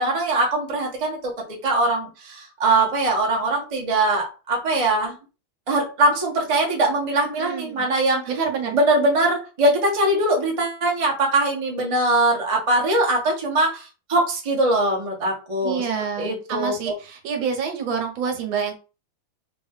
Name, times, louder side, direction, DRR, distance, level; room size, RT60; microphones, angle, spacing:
voice 1, 0.0-1.3 1.6-5.2 5.7-8.2 8.7-13.8 14.1-15.8 16.2-16.7, right 2 dB, 30° right, -1 dB, 0.6 m, -21 dB
voice 2, 7.4-7.9 8.3-8.8 15.6-18.8, right 6 dB, 75° right, 4 dB, 1.5 m, -27 dB
3.8 x 2.2 x 3.6 m, 0.33 s
omnidirectional pair, 2.3 m